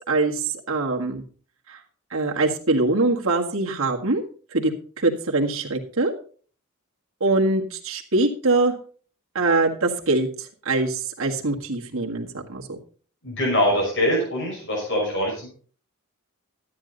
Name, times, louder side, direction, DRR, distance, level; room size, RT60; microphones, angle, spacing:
voice 1, 0.1-1.2 1.7-1.8 2.1-4.2 4.5-4.7 5.0-6.1 7.2-8.7 9.4-12.8, right 2 dB, 65° right, 0 dB, 1.7 m, -23 dB
voice 2, 13.2-15.5, equal, 55° left, -2 dB, 5.5 m, -23 dB
13.0 x 9.1 x 4.0 m, 0.43 s
head